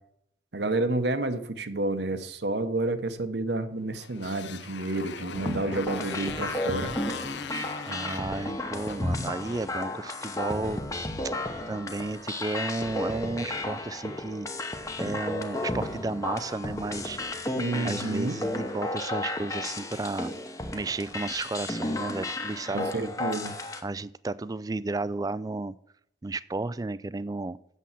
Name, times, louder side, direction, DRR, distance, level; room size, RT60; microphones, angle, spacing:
voice 1, 0.5-6.9 17.6-18.3 22.7-23.5, right 2 dB, 65° right, 9 dB, 1.0 m, -30 dB
Motorcycle, 3.9-10.4, left 6 dB, 70° left, 0.7 m, -41 dB
sound 1, 5.3-23.8, left 1 dB, 20° left, 0.9 m, -33 dB
voice 2, 7.9-10.8 11.2-11.3 11.6-14.5 15.0-17.2 17.8-20.3 20.7-23.2 23.8-25.7 26.2-27.6, right 3 dB, 20° right, 17 dB, 0.3 m, -33 dB
8.3 x 7.1 x 7.3 m, 0.74 s
head